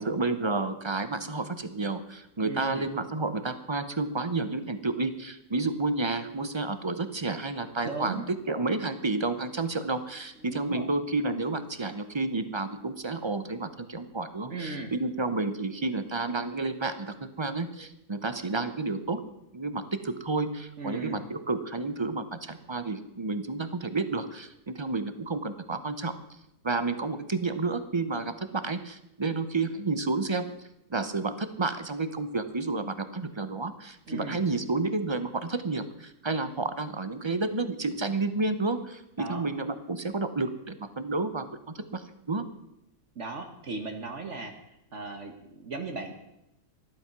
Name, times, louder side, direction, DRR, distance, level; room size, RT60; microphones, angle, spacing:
voice 1, 0.0-8.2 8.5-19.2 19.5-26.1 26.6-30.5 30.9-41.4 41.7-42.4, right 3 dB, 30° right, 11 dB, 0.5 m, -30 dB
voice 2, 2.4-2.9 7.8-8.3 10.4-10.9 14.5-14.9 20.8-21.3 34.1-34.4 39.2-39.4 43.1-46.1, right 3 dB, 50° right, 5 dB, 1.6 m, -37 dB
14.0 x 12.0 x 6.0 m, 0.85 s
omnidirectional pair, 1.7 m